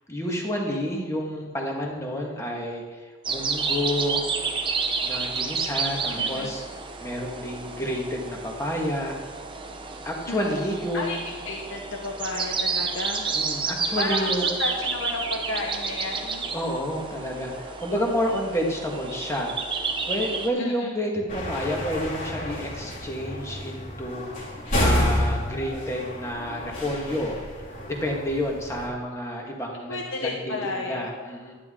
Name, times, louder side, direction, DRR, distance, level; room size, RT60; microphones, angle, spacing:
voice 1, 0.1-4.2 5.0-6.6 7.0-9.2 10.0-11.2 13.3-14.6 16.5-19.5 20.1-24.4 24.8-27.4 27.9-31.5, equal, 15° left, 0 dB, 1.6 m, -29 dB
sound 1, 3.2-20.5, right 4 dB, 25° right, 0.8 m, -30 dB
voice 2, 6.2-6.5 10.3-10.6 10.9-11.2 11.4-13.3 14.0-16.4 20.6-20.9 29.9-31.0, left 2 dB, 65° left, 0 dB, 1.0 m, -32 dB
sound 2, 21.3-28.9, left 1 dB, 40° left, 2.4 m, -29 dB
11.0 x 10.5 x 3.8 m, 1.4 s
head